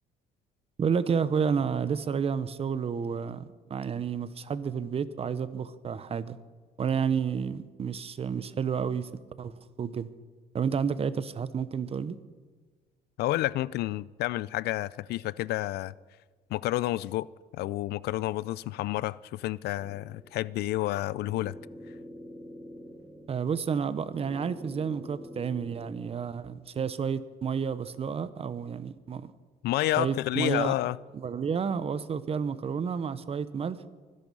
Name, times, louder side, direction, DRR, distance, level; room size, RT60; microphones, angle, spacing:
voice 1, 0.8-6.4 6.8-9.1 9.4-10.1 10.5-12.2 23.3-29.3 30.0-30.7 31.1-33.8, right 6 dB, 35° right, 0.9 m, -30 dB
voice 2, 13.2-15.9 16.5-21.6 29.6-31.0, left 16 dB, 75° left, 0.4 m, -30 dB
sound 1, 19.8-26.7, equal, 10° right, 1.8 m, -47 dB
24.0 x 11.0 x 5.4 m
cardioid pair, 110°, 17 cm